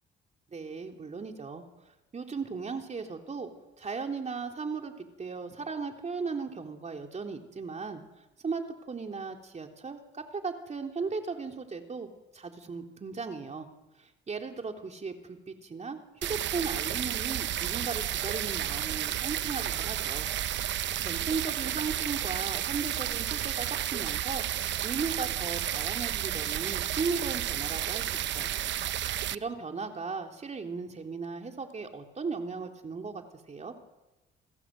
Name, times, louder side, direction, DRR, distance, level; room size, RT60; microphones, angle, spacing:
voice 1, 0.5-1.6 2.1-3.5 3.8-8.0 8.4-13.7 14.0-16.0 16.3-20.3 21.0-24.4 24.8-28.6 29.1-33.2 33.5-33.8, right 4 dB, 35° right, 3 dB, 3.7 m, -36 dB
sound 1, 16.2-29.4, right 11 dB, 65° right, 0.8 m, -32 dB
29.0 x 19.5 x 7.9 m, 1.1 s
cardioid pair, 90°, 20 cm